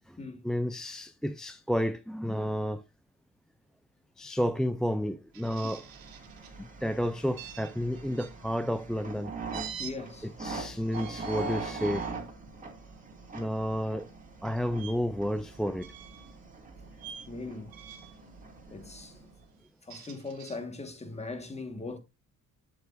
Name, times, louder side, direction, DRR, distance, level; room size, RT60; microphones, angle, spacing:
voice 1, 0.4-2.8 4.2-5.8 6.6-9.3 10.2-12.0 13.3-14.1 14.4-15.9, equal, ahead, 0.3 m, -31 dB
sound 1, 5.3-6.5 7.4-8.3 9.5-9.9 10.8-12.1 12.7-13.0 14.7-14.9 15.8-16.3 17.0-17.3 17.7-18.2 19.6-20.6, right 8 dB, 80° right, 1.8 m, -46 dB
sound 2, 5.6-19.4, right 3 dB, 25° right, 2.2 m, -42 dB
voice 2, 9.8-10.3 17.3-17.7 18.7-19.2 19.8-22.0, left 3 dB, 20° left, 1.5 m, -39 dB
7.9 x 7.8 x 2.5 m
cardioid pair, 115°, 35 cm